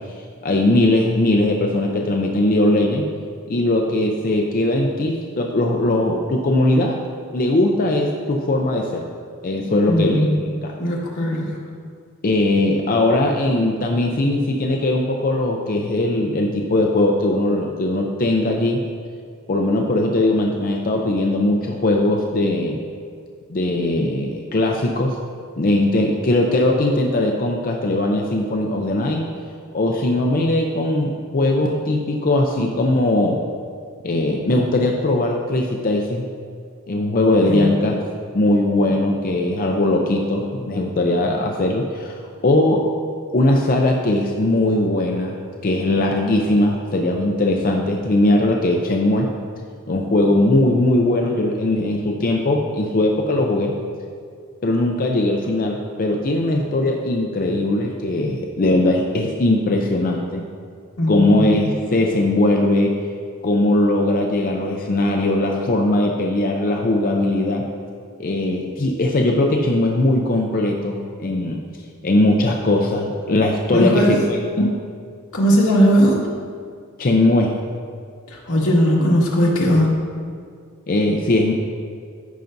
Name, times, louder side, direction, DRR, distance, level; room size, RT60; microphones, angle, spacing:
voice 1, 0.4-3.1 3.5-7.0 7.3-9.1 9.4-10.3 10.6-10.7 12.2-18.8 19.5-22.8 23.5-25.2 25.6-29.2 29.7-33.4 34.0-36.2 36.9-38.0 38.3-42.2 42.4-42.9 43.3-49.3 49.9-53.7 54.6-60.4 61.1-62.9 63.4-67.7 68.2-71.6 72.0-74.8 77.0-77.6 80.9-81.5, left 1 dB, 40° left, 1 dB, 0.5 m, -19 dB
voice 2, 9.6-10.4 10.8-11.6 37.4-37.8 61.0-61.6 73.7-74.2 75.3-76.2 78.3-79.9, equal, 70° left, -5 dB, 1.8 m, -18 dB
14.0 x 5.7 x 2.7 m, 2.2 s
head